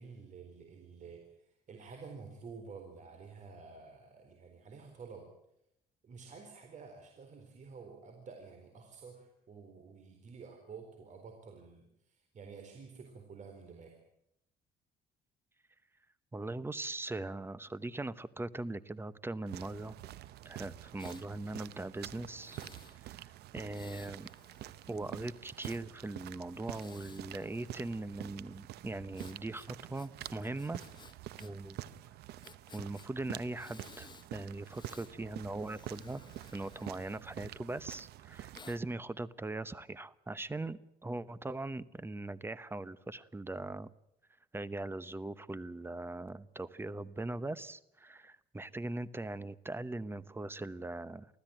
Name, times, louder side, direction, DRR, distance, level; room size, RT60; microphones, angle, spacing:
voice 1, 0.0-5.3 6.0-14.0, right 5 dB, 45° right, 4 dB, 4.1 m, -50 dB
voice 2, 16.3-19.9 20.4-22.6 22.9-24.3 24.9-30.8 31.4-31.8 32.7-36.2 36.5-43.9 44.5-51.3, right 2 dB, 15° right, 17 dB, 0.9 m, -40 dB
sound 1, 19.5-38.8, right 13 dB, 75° right, 0.9 m, -48 dB
Breathing, 21.0-21.3 22.3-23.0 23.7-25.8 26.6-28.2 29.2-31.5 31.8-31.9 32.4-33.1 33.5-34.3 34.6-35.1 35.6-37.7 38.5-38.8, left 5 dB, 25° left, 1.2 m, -57 dB
24.5 x 15.5 x 9.0 m, 0.79 s
cardioid pair, 110°, 17 cm